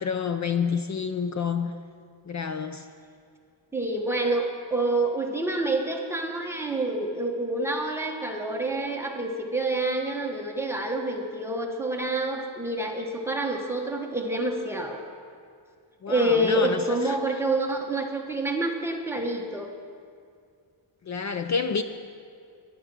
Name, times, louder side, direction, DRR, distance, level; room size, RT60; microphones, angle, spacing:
voice 1, 0.0-1.7 2.3-2.9 16.0-17.2 21.1-21.8, left 6 dB, 40° left, 9 dB, 0.5 m, -28 dB
voice 2, 3.7-15.0 16.1-19.7, right 1 dB, 5° right, 0 dB, 1.2 m, -27 dB
16.0 x 11.5 x 6.1 m, 2.3 s
wide cardioid pair, 160°, 45 cm